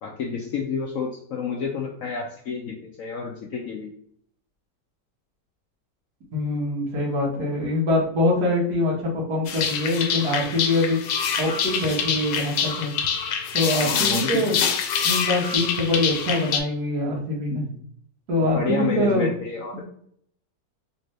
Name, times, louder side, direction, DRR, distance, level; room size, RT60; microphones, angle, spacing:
voice 1, 0.0-3.9 13.8-14.5 17.5-17.8 18.5-19.8, left 5 dB, 70° left, 0 dB, 0.8 m, -30 dB
voice 2, 6.3-11.0 11.4-12.9 13.5-14.6 15.0-17.6 18.3-19.3, left 1 dB, 60° right, -3 dB, 1.8 m, -24 dB
sound 1, 9.5-16.6, left 7 dB, 85° left, 1.3 m, -25 dB
4.2 x 2.7 x 3.1 m, 0.64 s
omnidirectional pair, 1.9 m